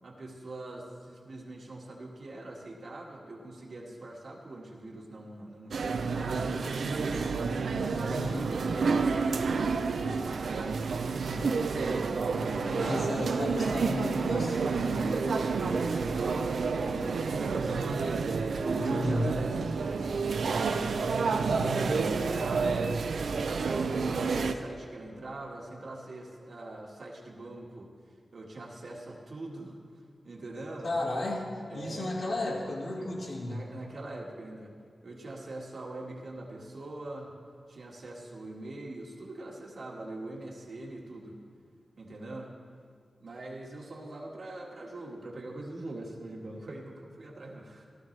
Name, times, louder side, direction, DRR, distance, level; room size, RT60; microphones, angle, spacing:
voice 1, 0.0-6.3 6.9-7.3 7.9-10.9 11.1-11.7 12.5-13.1 13.6-13.8 14.8-17.1 17.4-18.0 18.3-22.8 23.3-27.9 28.3-29.8 30.2-30.9 31.7-32.1 33.0-33.1 33.4-34.7 35.0-37.3 37.7-41.4 42.0-42.5 43.2-47.9, right 2 dB, 60° right, -2 dB, 1.8 m, -42 dB
sound 1, 5.7-24.5, right 4 dB, 85° right, 0.5 m, -29 dB
voice 2, 8.1-8.4 12.7-14.6 18.8-19.3 30.8-33.6, left 2 dB, 80° left, -5 dB, 2.1 m, -33 dB
16.0 x 13.5 x 3.3 m, 2.1 s
wide cardioid pair, 130°, 0 cm